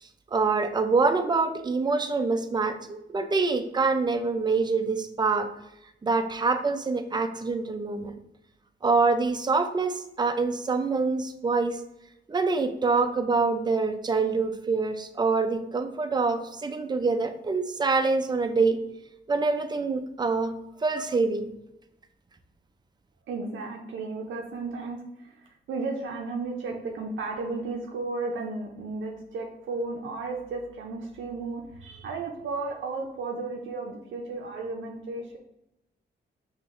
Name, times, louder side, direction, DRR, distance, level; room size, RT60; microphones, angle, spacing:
voice 1, 0.3-5.5 6.0-8.1 8.8-11.8 12.3-18.8 19.3-20.5 20.8-21.5, right 4 dB, 20° right, 8 dB, 0.4 m, -25 dB
voice 2, 23.3-35.4, right 3 dB, 80° right, 1 dB, 0.5 m, -34 dB
5.6 x 2.9 x 2.5 m, 0.86 s
cardioid pair, 90°, 20 cm